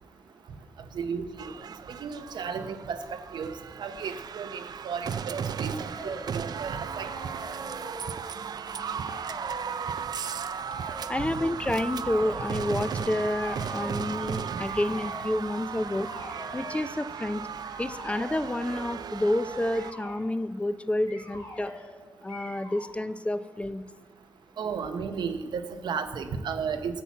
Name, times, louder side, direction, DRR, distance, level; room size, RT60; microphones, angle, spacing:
voice 1, 0.9-1.4 1.9-7.1 24.6-27.0, right 6 dB, 90° right, 8 dB, 0.7 m, -34 dB
sound 1, 1.4-19.9, right 7 dB, 65° right, 0.4 m, -36 dB
sound 2, 5.5-6.4 6.8-8.3 8.6-9.9 10.6-11.1 11.9-12.6 13.3-14.0 14.6-15.3 15.8-16.8 17.6-18.8 19.7-20.2 21.1-21.9 22.3-22.9, left 1 dB, 60° left, 3.2 m, -44 dB
voice 2, 11.1-16.1 16.5-17.4 17.8-21.7 22.2-23.8, left 1 dB, 15° left, 13 dB, 0.4 m, -29 dB
8.2 x 7.1 x 7.2 m, 1.4 s
cardioid pair, 70°, 7 cm